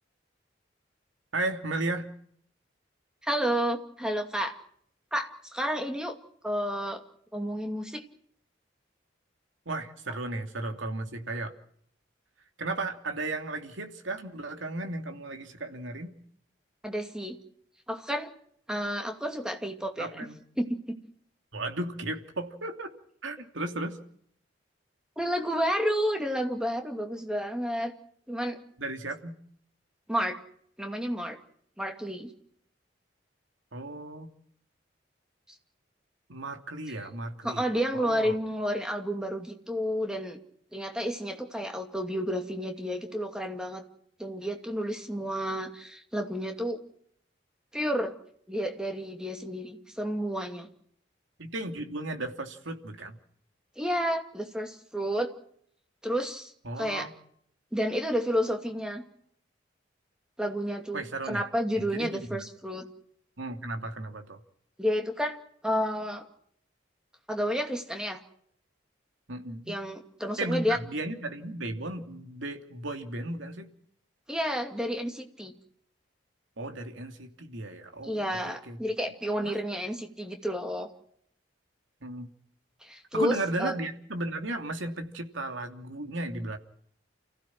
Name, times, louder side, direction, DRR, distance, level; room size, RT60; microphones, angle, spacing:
voice 1, 1.3-2.1 9.7-11.5 12.6-16.1 20.0-20.4 21.5-22.9 23.2-24.0 28.8-29.4 33.7-34.3 36.3-37.7 37.9-38.4 51.4-53.2 56.6-57.1 60.9-61.4 61.8-62.4 63.4-64.4 69.3-69.7 70.4-73.7 76.6-78.8 79.4-79.6 82.0-82.3 83.1-86.6, right 2 dB, 90° right, 5 dB, 2.8 m, -35 dB
voice 2, 3.2-4.5 5.1-6.2 6.4-7.0 7.3-8.0 16.8-17.4 17.9-18.3 18.7-20.3 20.6-20.7 25.2-27.9 28.3-28.6 30.1-30.4 30.8-31.4 31.8-32.3 37.4-40.4 40.7-43.8 44.2-46.8 47.7-48.1 48.5-50.7 53.8-55.3 56.0-57.1 57.7-59.0 60.4-62.9 64.8-65.4 65.6-66.2 67.3-68.2 69.7-70.8 74.3-75.5 78.0-80.9 82.8-83.7, equal, 5° right, 4 dB, 2.5 m, -30 dB
29.5 x 16.0 x 6.1 m, 0.64 s
head